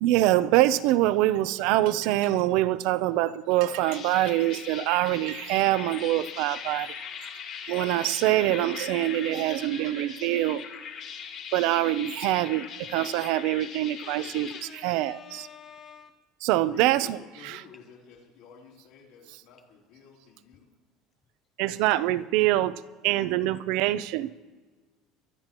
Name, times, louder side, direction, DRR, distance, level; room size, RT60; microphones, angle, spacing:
voice 1, 0.0-7.0 7.7-10.6 11.5-15.5 16.4-17.2 17.4-17.6 21.6-24.3, right 15 dB, 70° right, 0.5 m, -25 dB
sound 1, 3.6-14.6, left 7 dB, 50° left, 2.6 m, -40 dB
voice 2, 14.0-16.2, left 7 dB, 30° left, 0.6 m, -47 dB
voice 3, 16.6-20.7, left 6 dB, 75° left, 3.9 m, -50 dB
23.5 x 11.5 x 3.0 m
cardioid pair, 135°, 0 cm